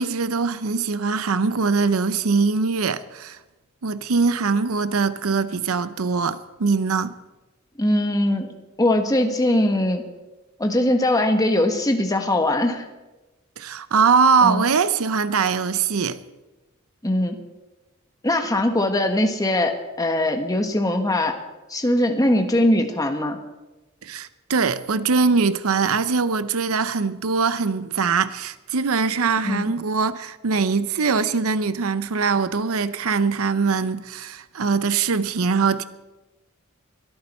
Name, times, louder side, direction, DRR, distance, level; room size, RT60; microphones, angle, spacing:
voice 1, 0.0-3.4 3.8-7.2 13.6-16.2 24.0-35.8, right 5 dB, 85° right, 0.7 m, -22 dB
voice 2, 7.8-8.5 8.8-10.0 10.6-12.8 14.4-14.7 17.0-17.4 18.2-21.3 21.7-23.4 29.4-29.7, left 1 dB, 15° left, 1.4 m, -21 dB
22.5 x 13.5 x 4.3 m
head